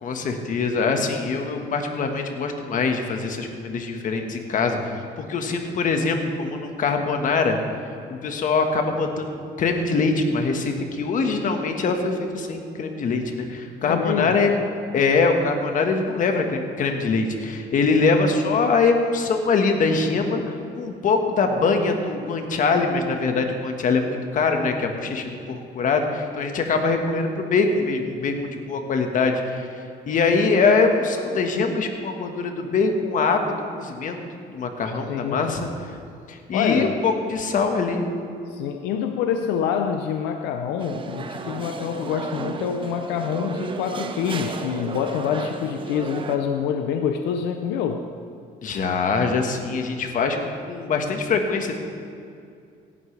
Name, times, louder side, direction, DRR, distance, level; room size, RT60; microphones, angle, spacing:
voice 1, 0.0-7.6 8.1-14.7 14.9-34.2 34.5-35.7 36.3-38.0 48.6-51.7, left 4 dB, 50° left, 4 dB, 1.5 m, -23 dB
voice 2, 13.8-14.4 35.1-35.5 36.5-37.0 38.5-48.1, left 7 dB, 90° left, 6 dB, 0.7 m, -26 dB
sound 1, 40.8-46.4, right 4 dB, 30° right, 0.8 m, -34 dB
17.0 x 11.0 x 3.3 m, 2.4 s
cardioid pair, 110°, 17 cm